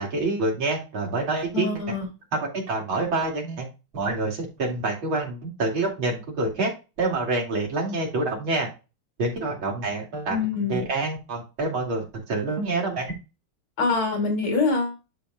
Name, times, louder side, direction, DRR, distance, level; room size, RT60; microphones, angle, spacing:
voice 1, 0.0-1.8 2.3-3.7 3.9-6.7 7.0-8.7 9.2-10.4 10.7-13.1, right 2 dB, 65° right, -1 dB, 3.7 m, -27 dB
voice 2, 1.5-2.1 10.3-10.8 13.8-15.0, left 4 dB, 75° left, 1 dB, 4.0 m, -25 dB
12.0 x 4.8 x 2.5 m, 0.28 s
omnidirectional pair, 2.4 m